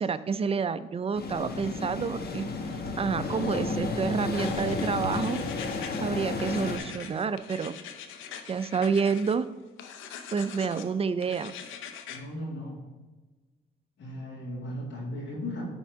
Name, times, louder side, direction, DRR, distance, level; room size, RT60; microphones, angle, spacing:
voice 1, 0.0-2.5 3.0-5.4 6.0-7.7 8.5-9.5 10.3-11.5, right 5 dB, 30° right, 13 dB, 0.4 m, -29 dB
sound 1, 1.1-6.8, left 3 dB, 50° left, 1.1 m, -32 dB
sound 2, 4.3-6.0 6.3-9.3 9.8-10.9 11.2-12.2, left 8 dB, 90° left, 0.7 m, -43 dB
voice 2, 12.1-12.9 14.0-15.6, left 1 dB, 70° left, -5 dB, 2.0 m, -36 dB
10.5 x 3.6 x 4.7 m, 1.2 s
cardioid pair, 90°, 20 cm